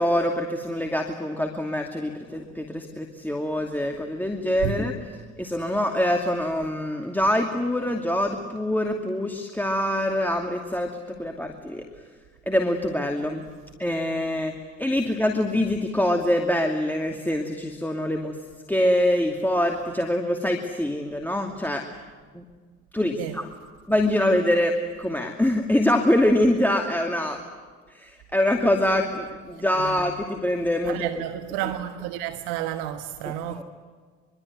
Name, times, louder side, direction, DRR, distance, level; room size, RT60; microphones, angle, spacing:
voice 1, 0.0-5.0 5.4-10.9 11.2-11.8 12.5-13.4 13.8-14.5 14.8-18.4 18.7-21.8 22.3-22.4 22.9-23.5 23.9-27.4 27.9-31.0 33.2-33.6, left 1 dB, 5° left, 2.6 m, -24 dB
voice 2, 29.5-30.1 30.9-33.6, right 12 dB, 70° right, 1.4 m, -31 dB
24.5 x 23.5 x 9.5 m
hypercardioid pair, 60°, 39 cm